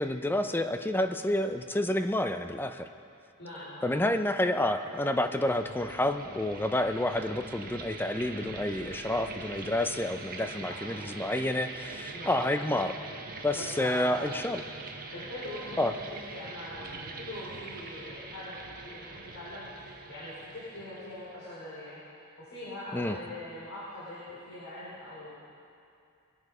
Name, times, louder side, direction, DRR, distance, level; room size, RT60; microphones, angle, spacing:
voice 1, 0.0-2.9 3.8-13.0 13.4-14.6 15.8-15.9 22.9-23.2, left 1 dB, 10° left, 8 dB, 0.5 m, -29 dB
voice 2, 3.4-3.9 10.7-10.8 12.1-12.4 13.5-14.1 15.1-25.3, left 1 dB, 65° left, -10 dB, 4.5 m, -42 dB
sound 1, 4.8-21.5, right 3 dB, 40° right, 1.2 m, -43 dB
21.5 x 11.0 x 4.9 m, 2.5 s
head